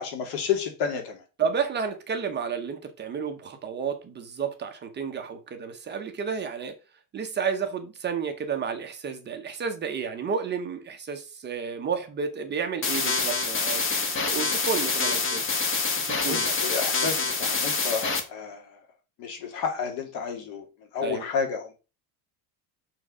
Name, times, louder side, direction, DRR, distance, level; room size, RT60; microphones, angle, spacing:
voice 1, 0.0-1.2 16.3-18.7 19.2-20.6 20.9-21.7, left 6 dB, 70° left, 2.3 m, -31 dB
voice 2, 1.4-6.7 7.1-15.5 15.9-16.6 21.0-21.2, right 6 dB, 25° right, 0.8 m, -31 dB
sound 1, 12.8-18.2, left 4 dB, 30° left, 1.1 m, -26 dB
6.3 x 4.6 x 4.9 m
cardioid pair, 165°, 41 cm